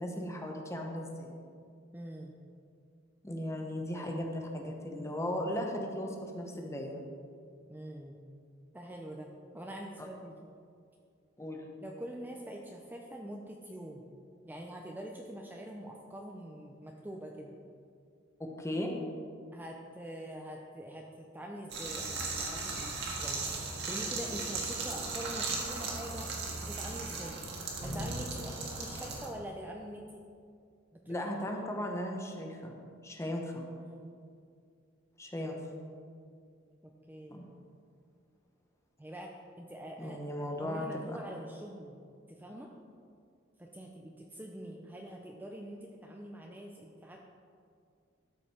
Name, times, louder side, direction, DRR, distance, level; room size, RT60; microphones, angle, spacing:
voice 1, 0.0-1.4 3.2-7.1 10.0-10.1 11.4-11.6 18.4-18.9 31.1-32.7 33.0-33.7 35.2-35.6 37.3-37.5 40.0-41.2, left 1 dB, 15° left, 1 dB, 1.0 m, -37 dB
voice 2, 1.9-2.3 4.0-4.2 7.7-8.2 8.7-10.3 11.8-14.1 14.4-17.6 19.5-26.3 26.6-27.4 27.8-30.2 30.9-31.3 33.8-34.1 36.8-37.5 39.0-40.2 40.6-42.0 42.3-42.7 43.6-47.2, right 1 dB, 10° right, 0 dB, 0.5 m, -45 dB
sound 1, 21.7-29.3, right 3 dB, 60° right, 1.7 m, -37 dB
12.5 x 5.3 x 4.4 m, 2.3 s
head